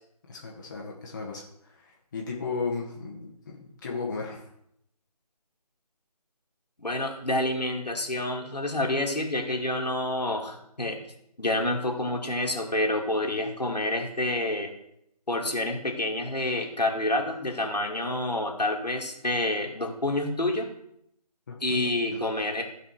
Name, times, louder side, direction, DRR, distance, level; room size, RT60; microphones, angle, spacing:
voice 1, 0.3-4.5 21.5-21.9, left 4 dB, 30° left, -2 dB, 1.4 m, -35 dB
voice 2, 6.8-11.0 11.4-14.7 15.3-20.7 21.6-22.6, left 1 dB, 85° left, 0 dB, 2.3 m, -28 dB
15.0 x 5.1 x 4.5 m, 0.76 s
figure-of-eight pair, 160°, 21 cm